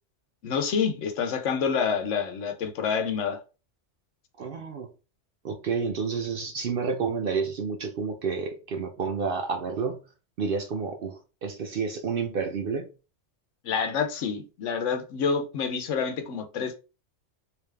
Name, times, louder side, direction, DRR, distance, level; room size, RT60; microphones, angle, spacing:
voice 1, 0.4-3.4 13.6-16.8, left 6 dB, 80° left, 1.1 m, -28 dB
voice 2, 4.4-4.9 5.4-10.0 10.4-12.9, right 5 dB, 60° right, 0.7 m, -30 dB
3.4 x 2.8 x 3.3 m
omnidirectional pair, 1.2 m